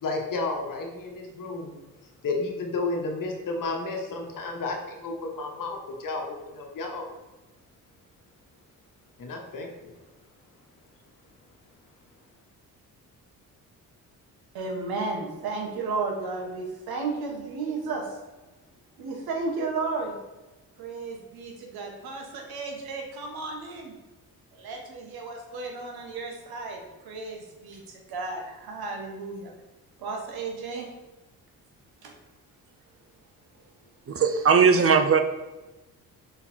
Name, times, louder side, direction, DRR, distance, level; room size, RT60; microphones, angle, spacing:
voice 1, 0.0-1.8 2.2-7.1 9.2-9.7, left 3 dB, 60° left, 2 dB, 1.4 m, -32 dB
voice 2, 14.5-18.2 19.0-20.2 20.8-23.9 24.5-29.5 30.0-30.9 32.0-32.1, right 3 dB, 80° right, 2 dB, 1.4 m, -33 dB
voice 3, 34.1-35.2, right 5 dB, 40° right, 8 dB, 0.6 m, -19 dB
5.7 x 4.0 x 4.4 m, 1.1 s
cardioid pair, 85°, 37 cm